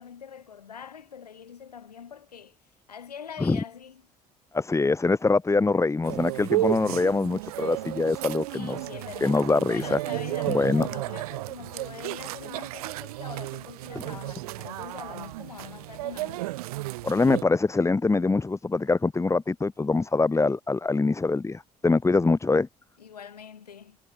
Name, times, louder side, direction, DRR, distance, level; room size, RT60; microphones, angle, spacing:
voice 1, 0.0-2.6 2.9-4.0 8.5-16.5 23.0-24.0, left 7 dB, 80° left, 1.7 m, -43 dB
voice 2, 4.5-8.8 9.2-10.0 10.5-10.9 13.9-14.0 17.0-22.7, left 3 dB, 15° left, 0.9 m, -24 dB
sound 1, 6.0-17.4, right 19 dB, 70° right, 1.0 m, -33 dB
figure-of-eight pair, 50°, 20 cm